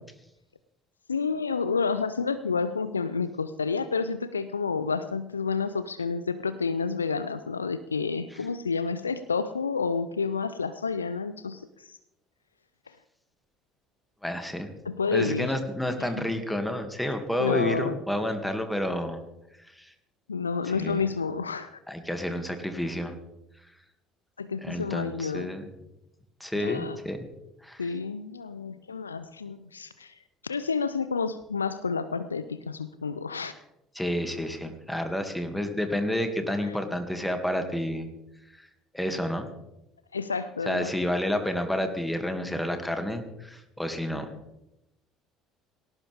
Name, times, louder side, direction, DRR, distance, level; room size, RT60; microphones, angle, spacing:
voice 1, 1.1-11.9 14.8-15.5 16.0-16.2 17.4-18.0 20.3-21.8 24.4-25.5 26.5-27.0 27.8-30.2 30.4-33.5 40.1-40.9, left 5 dB, 85° left, 13 dB, 0.5 m, -30 dB
voice 2, 14.2-14.7 15.1-19.2 19.6-19.9 20.6-21.0 21.9-23.2 24.6-25.7 26.4-27.3 27.6-27.9 34.0-38.1 38.6-38.7 38.9-39.5 40.7-44.3, left 1 dB, 5° left, 6 dB, 2.4 m, -30 dB
18.5 x 18.0 x 3.6 m, 0.91 s
figure-of-eight pair, 60°, 0 cm